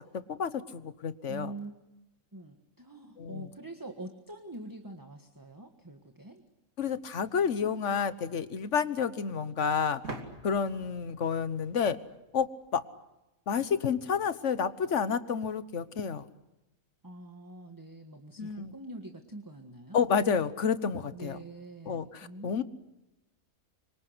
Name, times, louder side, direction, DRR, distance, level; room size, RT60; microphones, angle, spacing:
voice 1, 0.0-1.5 3.2-3.5 6.8-10.0 10.4-12.0 12.3-12.8 13.5-16.3 18.4-18.7 19.9-21.4 21.9-22.6, left 6 dB, 60° left, 13 dB, 1.4 m, -30 dB
voice 2, 1.3-1.7 2.3-6.4 17.0-20.0 21.1-22.6, right 2 dB, 15° right, 5 dB, 1.6 m, -45 dB
sound 1, 10.0-12.7, right 2 dB, 80° right, 3.2 m, -45 dB
26.5 x 24.0 x 8.0 m, 1.0 s
omnidirectional pair, 1.4 m